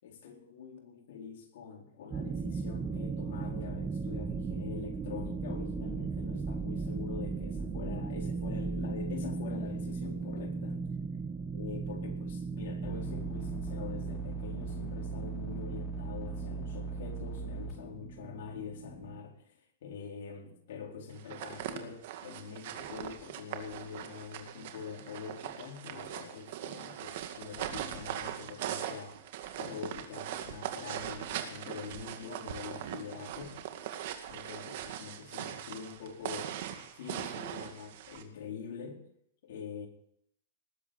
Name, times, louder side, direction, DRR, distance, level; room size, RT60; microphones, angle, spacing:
voice 1, 0.0-10.8 11.5-29.2 29.6-33.6 34.3-36.6 36.9-39.0 39.4-39.9, left 6 dB, 65° left, 1 dB, 4.2 m, -44 dB
sound 1, 2.1-19.2, right 4 dB, 20° right, 1.4 m, -37 dB
sound 2, 12.8-17.7, right 4 dB, 25° left, 6.2 m, -39 dB
sound 3, 21.2-38.2, right 10 dB, 55° right, 2.1 m, -40 dB
19.5 x 8.1 x 7.8 m, 0.72 s
hypercardioid pair, 140°, 0 cm